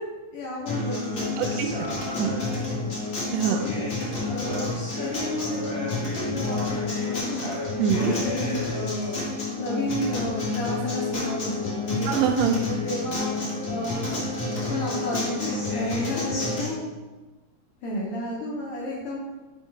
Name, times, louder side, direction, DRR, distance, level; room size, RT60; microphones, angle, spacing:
voice 1, 0.3-1.6 2.7-3.0 3.5-4.0 4.2-4.7 5.0-7.6 7.9-12.1 12.6-14.4 14.7-16.9 17.8-19.2, left 1 dB, 80° left, -4 dB, 1.3 m, -32 dB
Acoustic guitar, 0.7-16.7, left 3 dB, 50° left, 0.8 m, -29 dB
voice 2, 1.4-2.3 3.3-3.7 7.8-8.2 12.1-12.6, right 7 dB, 80° right, 4 dB, 1.5 m, -25 dB
4.9 x 3.9 x 5.2 m, 1.2 s
omnidirectional pair, 3.6 m